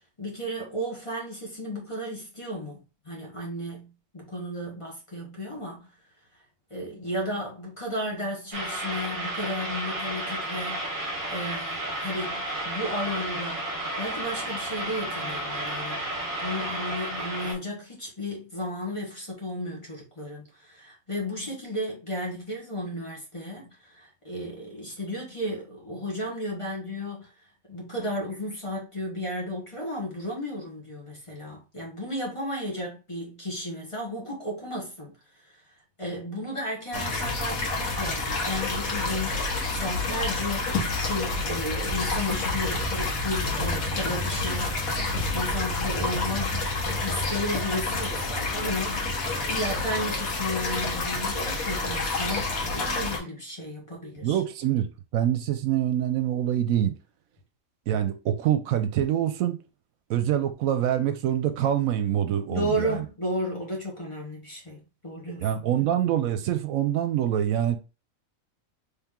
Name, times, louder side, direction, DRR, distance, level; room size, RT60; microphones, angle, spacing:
voice 1, 0.2-5.9 6.7-13.7 14.0-16.1 16.4-27.3 27.7-35.1 35.4-35.6 36.0-46.6 47.0-54.4 62.5-65.7, equal, 25° left, 1.1 m, -34 dB
sound 1, 8.5-17.5, right 1 dB, 40° right, 1.2 m, -32 dB
sound 2, 36.9-53.2, left 2 dB, 80° left, 1.5 m, -28 dB
voice 2, 54.2-56.9 57.9-59.6 60.1-63.0 65.4-67.8, right 11 dB, 80° right, 1.0 m, -25 dB
3.4 x 2.9 x 3.6 m
omnidirectional pair, 1.5 m